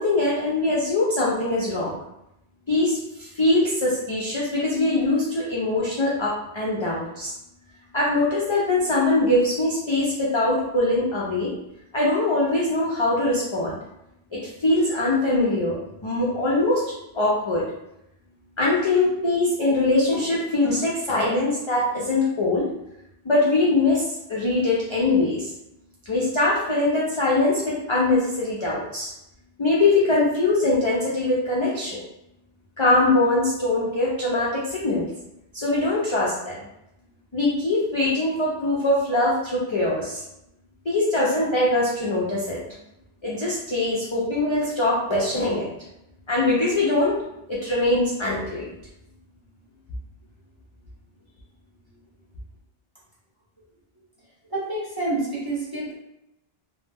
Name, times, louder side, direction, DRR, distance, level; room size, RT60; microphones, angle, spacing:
voice 1, 0.0-2.0 2.7-7.3 7.9-11.5 11.9-13.8 14.3-16.9 17.1-17.6 18.6-22.7 23.2-25.5 26.1-29.1 29.6-32.0 32.8-35.1 35.5-36.7 37.3-40.2 40.9-42.6 43.2-45.7 46.3-47.2 47.5-48.7, left 2 dB, 45° left, -6 dB, 0.3 m, -22 dB
voice 2, 54.4-55.9, right 2 dB, 25° right, -8 dB, 0.6 m, -28 dB
2.1 x 2.0 x 3.3 m, 0.86 s
omnidirectional pair, 1.0 m